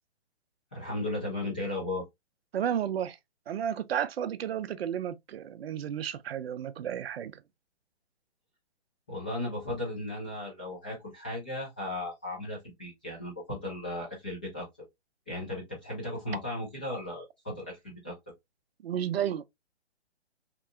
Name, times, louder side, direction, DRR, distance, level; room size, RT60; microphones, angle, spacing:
voice 1, 0.7-2.0 9.1-14.7 15.3-18.2, left 1 dB, 10° left, 0.3 m, -36 dB
voice 2, 2.5-3.2 3.5-7.4 18.8-19.4, right 9 dB, 60° right, 0.4 m, -32 dB
3.1 x 2.9 x 2.4 m
hypercardioid pair, 140°, 34 cm